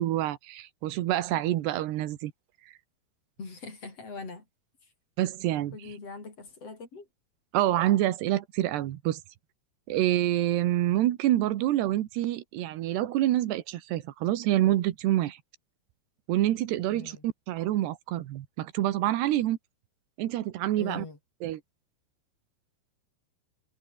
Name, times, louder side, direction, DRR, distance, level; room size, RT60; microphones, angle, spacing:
voice 1, 0.0-2.3 5.2-5.8 7.5-9.2 9.9-15.4 16.3-19.6 20.2-21.1 21.4-21.6, right 14 dB, 85° right, 3.4 m, -27 dB
voice 2, 3.4-4.4 5.7-7.1 16.9-17.2 20.8-21.2, left 4 dB, 35° left, 5.6 m, -42 dB
omnidirectional pair, 4.8 m